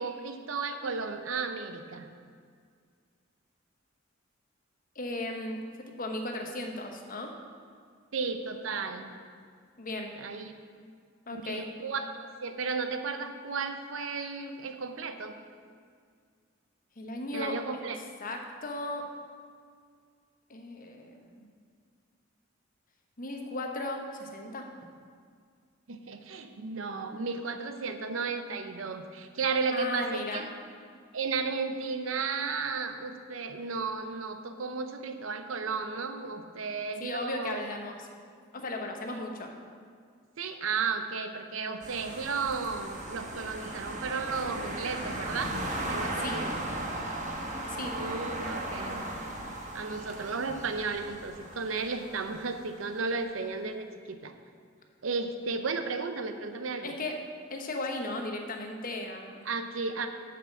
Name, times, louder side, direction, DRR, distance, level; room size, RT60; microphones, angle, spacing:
voice 1, 0.0-2.1 8.1-9.2 10.2-10.5 11.3-15.4 17.3-18.0 25.9-30.5 31.1-37.7 39.1-39.2 40.4-45.6 45.9-46.6 47.9-49.1 49.7-54.3 55.0-56.9 59.5-60.1, right 4 dB, 75° right, 7 dB, 0.7 m, -34 dB
voice 2, 4.9-7.3 9.8-10.1 11.3-11.7 17.0-17.6 18.2-19.1 20.5-21.5 23.2-24.7 29.7-30.4 37.0-38.1 38.5-39.5 46.2-46.4 47.7-47.9 56.8-57.2 57.5-59.5, left 2 dB, 45° left, 3 dB, 1.0 m, -36 dB
sound 1, 41.8-52.6, right 1 dB, 40° right, 1.1 m, -37 dB
7.3 x 5.9 x 7.2 m, 2.1 s
head